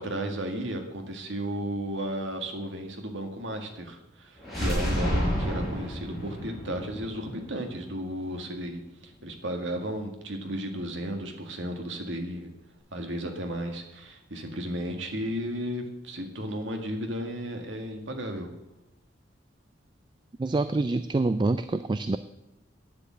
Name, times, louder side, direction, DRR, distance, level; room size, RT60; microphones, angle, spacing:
voice 1, 0.0-12.5 12.9-18.5, equal, 80° right, 4 dB, 1.9 m, -34 dB
sound 1, 4.4-8.3, equal, ahead, 5.5 m, -30 dB
voice 2, 20.4-22.2, right 2 dB, 25° right, 12 dB, 0.3 m, -26 dB
10.0 x 8.4 x 7.5 m, 0.93 s
head